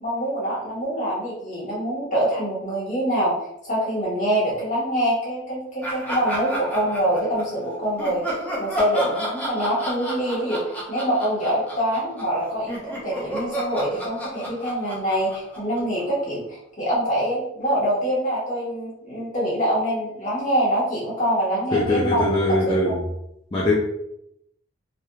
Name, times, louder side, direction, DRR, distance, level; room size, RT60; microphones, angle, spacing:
voice 1, 0.0-3.3 3.6-22.4 22.6-23.0, equal, 40° left, -6 dB, 1.3 m, -25 dB
Laughter, 5.8-7.6 8.0-12.4 12.7-16.3, equal, 10° left, 0.9 m, -32 dB
voice 2, 21.7-23.0 23.5-23.7, left 1 dB, 25° left, -4 dB, 0.4 m, -21 dB
3.3 x 2.6 x 2.3 m, 0.79 s
head